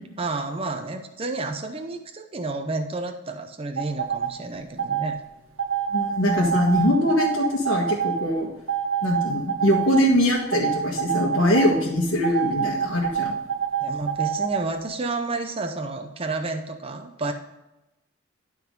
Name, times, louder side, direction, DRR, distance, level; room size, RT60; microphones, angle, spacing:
voice 1, 0.2-5.2 13.8-17.3, right 3 dB, 30° right, 5 dB, 0.6 m, -30 dB
sound 1, 3.8-4.3 4.8-5.1 5.6-8.2 8.7-10.0 10.5-11.7 12.2-14.6, right 8 dB, 85° right, 0.9 m, -26 dB
voice 2, 5.9-8.5 9.0-13.3, left 1 dB, 60° left, -6 dB, 1.7 m, -22 dB
12.0 x 4.0 x 5.3 m, 0.96 s
head